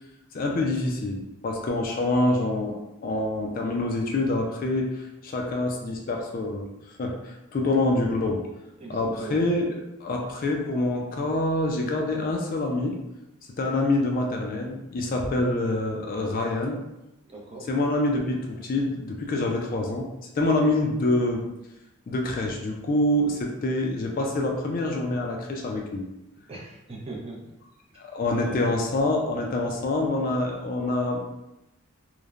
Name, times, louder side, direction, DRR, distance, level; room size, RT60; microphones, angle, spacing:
voice 1, 0.3-6.7 7.0-8.4 8.9-9.7 10.0-13.0 13.6-16.8 17.7-20.1 20.4-21.4 22.1-26.1 28.0-31.2, left 2 dB, 40° left, 1 dB, 0.3 m, -26 dB
voice 2, 8.8-9.4 17.3-17.7 26.5-27.5 28.3-28.9, right 2 dB, 25° right, -2 dB, 0.4 m, -39 dB
3.0 x 2.0 x 2.4 m, 0.93 s
head